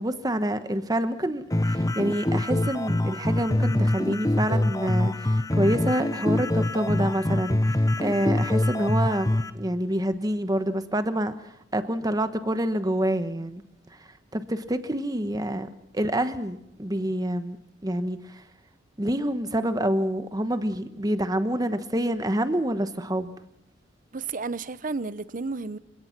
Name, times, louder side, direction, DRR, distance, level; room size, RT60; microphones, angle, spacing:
voice 1, 0.0-13.6 14.3-15.7 15.9-17.6 17.8-18.4 19.0-23.3, right 1 dB, 20° right, 1.2 m, -27 dB
sound 1, 1.5-9.5, left 1 dB, 20° left, 0.9 m, -24 dB
voice 2, 24.1-25.8, right 4 dB, 45° right, 0.7 m, -32 dB
28.0 x 17.5 x 6.0 m
head